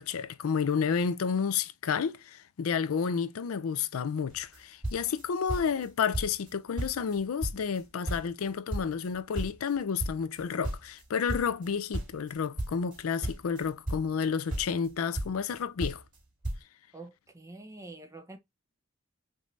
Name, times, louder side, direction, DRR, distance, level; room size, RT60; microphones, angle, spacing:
voice 1, 0.0-16.0, left 6 dB, 90° left, 0.4 m, -31 dB
sound 1, 4.3-4.6 4.8-5.9 6.1-6.5 6.8-8.4 8.7-11.7 11.9-14.2 14.5-15.5 15.8-16.2 16.4-16.6, right 1 dB, 40° right, 2.9 m, -35 dB
voice 2, 16.9-18.4, right 2 dB, 15° right, 0.7 m, -46 dB
5.2 x 2.7 x 3.0 m
head